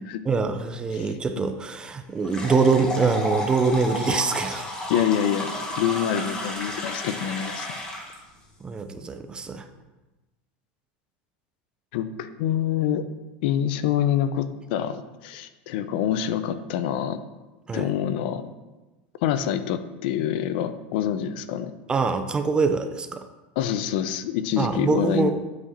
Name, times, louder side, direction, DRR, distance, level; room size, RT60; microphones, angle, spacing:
voice 1, 0.3-4.7 8.6-9.7 17.7-17.9 21.9-23.2 24.6-25.3, right 4 dB, 15° right, 8 dB, 0.4 m, -24 dB
sound 1, 2.2-8.2, left 1 dB, 15° left, 1.2 m, -32 dB
voice 2, 4.9-7.7 11.9-13.1 13.4-17.2 17.7-18.5 19.2-21.7 23.6-25.3, left 10 dB, 65° left, 12 dB, 0.5 m, -26 dB
8.3 x 4.9 x 4.2 m, 1.1 s
supercardioid pair, 155°, 6 cm